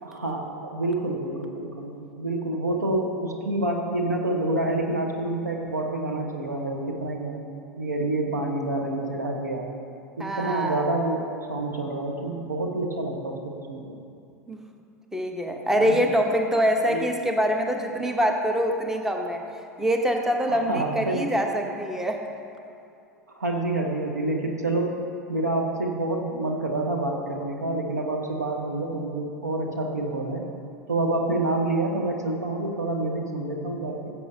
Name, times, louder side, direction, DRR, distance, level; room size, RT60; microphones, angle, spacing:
voice 1, 0.0-7.4 7.8-9.7 10.2-13.8 15.7-16.0 16.9-17.0 20.5-21.2 23.3-25.0 25.3-30.4 30.9-34.1, right 2 dB, 80° right, 1 dB, 1.1 m, -28 dB
voice 2, 10.2-10.8 14.5-14.6 15.1-19.4 19.8-22.3, equal, 5° right, 3 dB, 0.8 m, -24 dB
16.5 x 7.8 x 2.7 m, 2.6 s
figure-of-eight pair, 80°, 9 cm